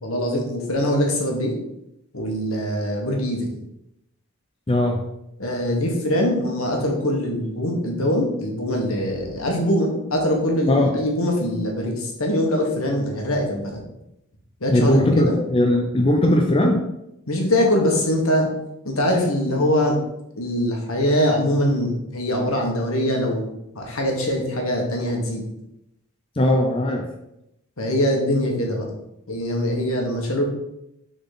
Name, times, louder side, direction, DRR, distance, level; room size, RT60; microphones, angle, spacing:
voice 1, 0.0-1.6 2.1-3.5 5.4-13.8 14.6-15.3 17.3-18.5 18.8-20.0 20.4-23.5 23.7-25.5 27.8-28.9 29.3-30.4, equal, 70° left, 1 dB, 1.4 m, -23 dB
voice 2, 4.7-5.0 10.7-10.9 14.7-16.8 26.4-27.1, left 1 dB, 25° left, 1 dB, 0.5 m, -19 dB
6.5 x 3.9 x 4.0 m, 0.84 s
head